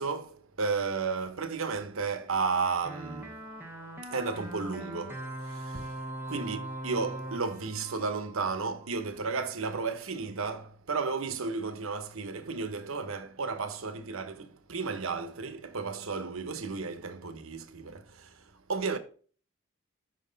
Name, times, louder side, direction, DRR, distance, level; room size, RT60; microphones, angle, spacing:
voice 1, 0.0-3.4 4.0-18.4 18.7-19.0, right 4 dB, 75° right, 1.0 m, -33 dB
sound 1, 2.9-9.0, right 1 dB, 10° right, 1.2 m, -41 dB
7.6 x 6.0 x 4.0 m
head